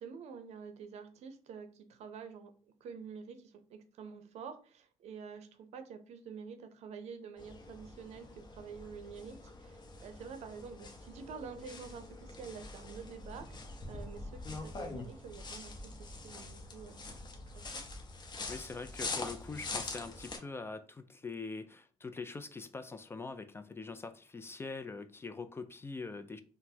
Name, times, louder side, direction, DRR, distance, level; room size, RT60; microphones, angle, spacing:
voice 1, 0.0-17.3 17.7-17.8, right 6 dB, 70° right, 9 dB, 0.5 m, -48 dB
sound 1, 7.4-20.4, left 3 dB, 40° left, 0.8 m, -44 dB
voice 2, 18.5-26.4, left 4 dB, 20° left, 9 dB, 0.3 m, -43 dB
3.9 x 2.1 x 2.7 m, 0.40 s
cardioid pair, 90°, 12 cm